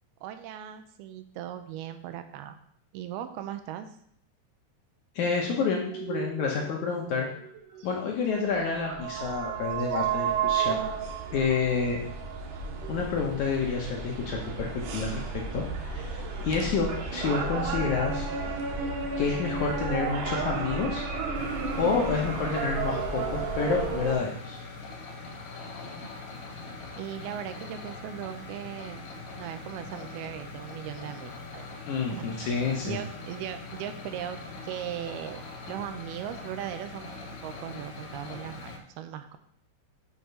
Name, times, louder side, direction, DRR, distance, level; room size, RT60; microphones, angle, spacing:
voice 1, 0.2-2.6 2.9-3.9 16.6-16.8 27.0-29.1 29.4-31.7 32.1-32.2 32.8-37.1 37.4-39.4, right 10 dB, 85° right, 8 dB, 2.5 m, -38 dB
voice 2, 5.2-7.3 7.8-10.8 11.3-12.0 12.9-18.3 19.2-21.1 21.8-24.6 31.9-33.0, left 5 dB, 70° left, -1 dB, 1.9 m, -29 dB
sound 1, 5.9-24.1, right 5 dB, 65° right, 2.2 m, -32 dB
sound 2, 21.3-38.8, left 3 dB, 90° left, 3.5 m, -42 dB
8.6 x 3.8 x 6.7 m, 0.66 s
omnidirectional pair, 4.5 m